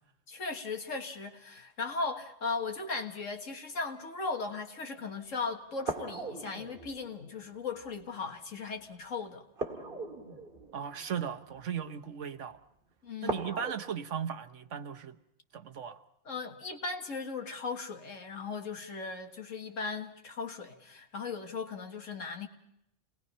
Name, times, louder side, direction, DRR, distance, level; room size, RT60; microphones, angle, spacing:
voice 1, 0.3-9.4 13.0-13.5 16.3-22.5, left 4 dB, 85° left, 2.1 m, -37 dB
sound 1, 5.8-8.0 9.6-11.8 13.2-13.7, right 3 dB, 45° right, 2.2 m, -39 dB
voice 2, 10.7-12.6 13.2-15.2 15.5-16.0, right 8 dB, 75° right, 1.3 m, -37 dB
29.0 x 19.5 x 5.5 m
omnidirectional pair, 1.3 m